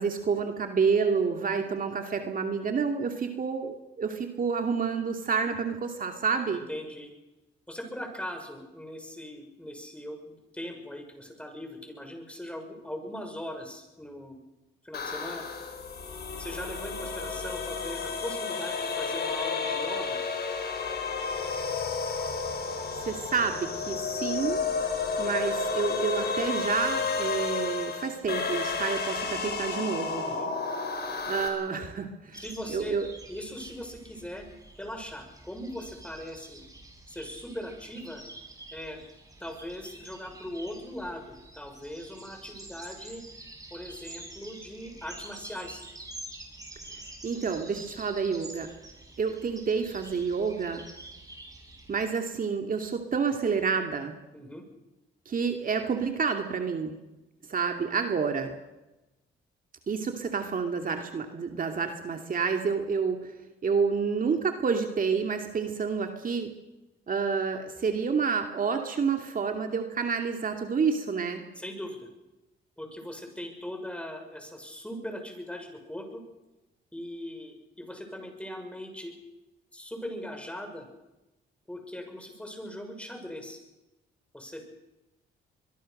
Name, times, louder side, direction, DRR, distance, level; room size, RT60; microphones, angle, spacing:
voice 1, 0.0-6.6 23.0-24.6 25.2-30.3 31.3-32.4 32.7-33.1 47.2-48.7 49.2-50.8 51.9-54.1 55.3-57.0 57.5-58.5 59.9-63.3 63.6-66.5 67.1-71.4, right 5 dB, 45° right, 4 dB, 2.5 m, -29 dB
voice 2, 6.5-7.1 7.7-14.4 14.8-15.4 16.4-20.2 30.2-30.5 32.3-33.0 33.3-34.5 34.7-36.6 37.1-38.2 38.7-39.0 39.4-43.2 43.7-45.8 54.3-54.6 71.5-72.1 72.8-76.2 76.9-79.1 79.7-80.9 81.7-83.6 84.3-84.7, left 1 dB, 5° left, 4 dB, 6.3 m, -40 dB
sound 1, 14.9-31.5, left 4 dB, 55° left, 5.5 m, -31 dB
sound 2, 32.3-52.1, right 2 dB, 20° right, 6.7 m, -47 dB
23.5 x 22.5 x 6.7 m, 1.0 s
cardioid pair, 90°, 20 cm